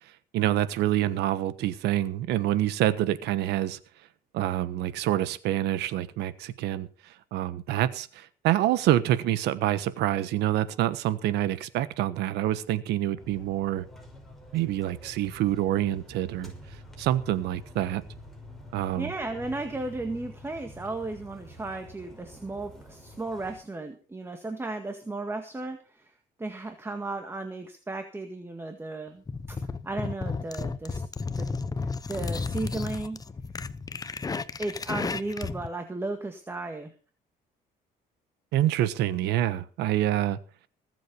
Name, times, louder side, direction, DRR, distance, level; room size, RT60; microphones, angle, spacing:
voice 1, 0.3-3.8 4.3-6.9 7.3-13.8 14.5-16.5 17.0-18.0 18.7-19.1 38.5-40.4, right 13 dB, 85° right, 1.3 m, -26 dB
sound 1, 13.2-23.6, left 1 dB, ahead, 5.9 m, -47 dB
voice 2, 19.0-26.1 26.4-29.6 29.8-31.0 31.4-31.5 31.8-33.2 34.6-36.9, right 2 dB, 15° right, 1.9 m, -35 dB
sound 2, 29.3-35.7, left 4 dB, 20° left, 0.9 m, -33 dB
20.5 x 7.8 x 5.5 m
cardioid pair, 110°, 17 cm